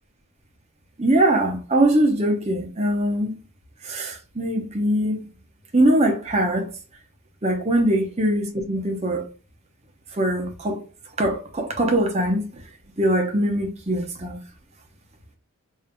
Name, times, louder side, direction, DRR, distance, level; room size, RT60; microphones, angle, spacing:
voice 1, 1.0-3.3 3.8-5.2 5.7-6.7 7.4-9.2 10.1-10.8 11.2-12.5 13.0-14.4, right 1 dB, 30° right, 0.8 m, -22 dB
5.1 x 2.7 x 2.2 m
head